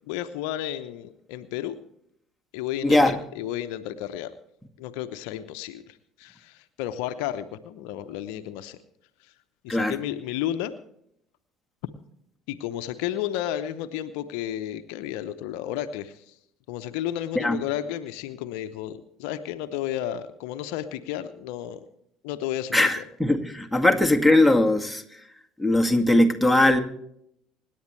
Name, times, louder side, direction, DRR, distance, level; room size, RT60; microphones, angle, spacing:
voice 1, 0.1-1.8 2.5-4.3 4.8-8.8 9.6-10.7 12.5-16.3 16.7-21.9 22.2-23.0, left 12 dB, 65° left, 10 dB, 0.8 m, -32 dB
voice 2, 2.8-3.2 9.7-10.0 17.4-17.6 22.7-25.0 25.6-26.8, left 1 dB, ahead, 8 dB, 1.9 m, -20 dB
25.5 x 10.5 x 3.3 m, 0.74 s
figure-of-eight pair, 60°, 0 cm